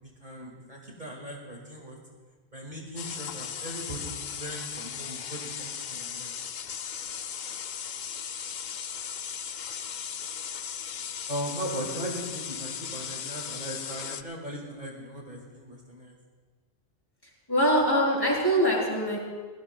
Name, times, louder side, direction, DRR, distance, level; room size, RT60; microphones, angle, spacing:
voice 1, 0.2-2.0 2.5-6.3 11.3-16.2, equal, 45° right, 0 dB, 2.1 m, -38 dB
sound 1, 3.0-14.2, left 8 dB, 55° left, 0.6 m, -37 dB
voice 2, 17.5-19.2, equal, 20° left, -3 dB, 3.8 m, -23 dB
27.0 x 17.0 x 2.3 m, 1.5 s
omnidirectional pair, 1.1 m